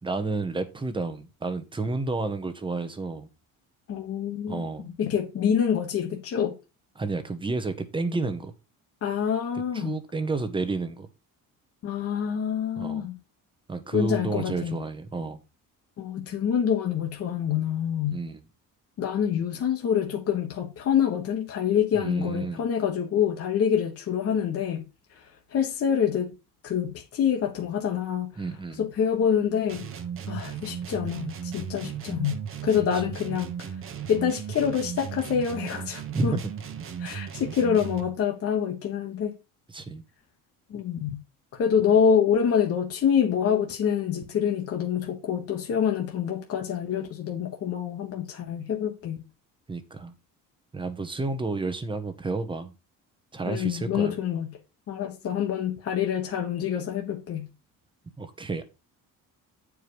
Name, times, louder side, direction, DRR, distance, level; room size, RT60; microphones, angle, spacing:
voice 1, 0.0-3.3 4.5-4.9 7.0-8.5 9.5-11.1 12.8-13.1 13.7-15.4 18.1-18.4 22.0-22.7 28.4-28.8 36.1-36.5 39.7-40.0 49.7-50.1 50.7-52.7 53.3-54.1 58.2-58.6, right 3 dB, 15° right, 1.0 m, -31 dB
voice 2, 3.9-4.6 5.0-6.6 9.0-10.0 11.8-13.2 13.9-14.8 16.0-18.2 19.0-24.8 25.5-26.3 26.6-28.3 28.8-29.9 30.3-33.7 34.1-36.4 37.0-39.3 40.7-41.2 41.6-49.2 53.5-54.5 54.9-57.5, left 8 dB, 45° left, 1.3 m, -26 dB
sound 1, 29.7-38.2, right 8 dB, 40° right, 1.1 m, -36 dB
9.2 x 4.8 x 5.1 m
cardioid pair, 160°, 34 cm